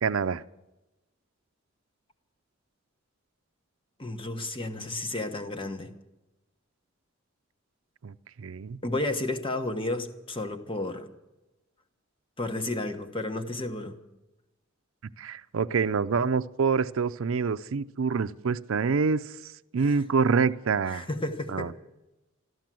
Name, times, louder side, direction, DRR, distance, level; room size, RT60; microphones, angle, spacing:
voice 1, 0.0-0.4 8.0-8.8 15.2-21.1 21.5-21.7, right 5 dB, 80° right, 12 dB, 0.5 m, -27 dB
voice 2, 4.0-5.9 8.8-11.1 12.4-14.0 19.9-20.0 20.9-21.7, left 2 dB, 25° left, 7 dB, 1.2 m, -32 dB
13.5 x 12.5 x 7.6 m, 1.0 s
head